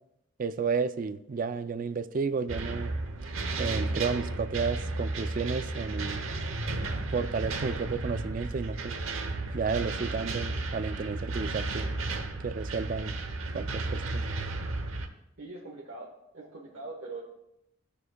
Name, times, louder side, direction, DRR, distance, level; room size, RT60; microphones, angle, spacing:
voice 1, 0.4-2.9 3.6-6.2 7.1-8.9 9.5-11.9 12.4-13.1 13.5-14.3, right 5 dB, 40° right, 11 dB, 0.4 m, -32 dB
sound 1, 2.5-15.1, right 2 dB, 80° right, 0.9 m, -33 dB
voice 2, 15.4-16.1 16.3-17.2, right 3 dB, 60° right, -4 dB, 1.3 m, -42 dB
16.5 x 6.7 x 2.3 m, 0.85 s
head